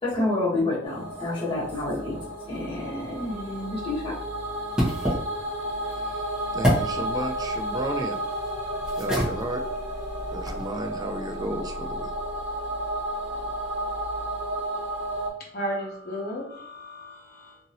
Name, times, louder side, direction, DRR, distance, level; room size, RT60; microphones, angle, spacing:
voice 1, 0.0-4.2, left 2 dB, 30° left, -9 dB, 1.3 m, -29 dB
sound 1, 0.8-15.3, right 1 dB, 65° right, 0.8 m, -32 dB
sound 2, 3.0-10.7, equal, 5° right, 1.0 m, -31 dB
voice 2, 6.5-8.2 9.0-9.6 10.3-12.1, right 1 dB, 20° right, 4 dB, 0.3 m, -33 dB
voice 3, 15.5-17.6, equal, 55° left, -1 dB, 0.9 m, -34 dB
2.8 x 2.6 x 2.8 m, 0.63 s
head